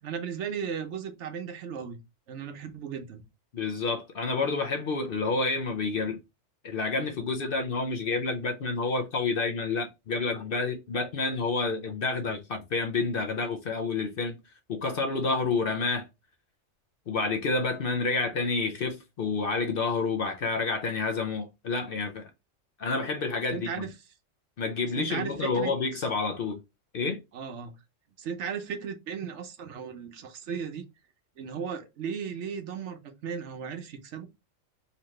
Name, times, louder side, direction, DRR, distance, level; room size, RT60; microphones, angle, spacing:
voice 1, 0.0-2.0 2.3-3.2 23.5-23.9 25.0-26.1 27.3-27.7 28.2-30.8 31.4-34.3, right 7 dB, 70° right, 1.0 m, -36 dB
voice 2, 3.5-6.2 6.6-14.4 14.7-16.1 17.1-22.3 22.8-23.7 24.6-26.6 26.9-27.2, left 4 dB, 55° left, 0.7 m, -29 dB
3.9 x 2.9 x 3.1 m
omnidirectional pair, 1.3 m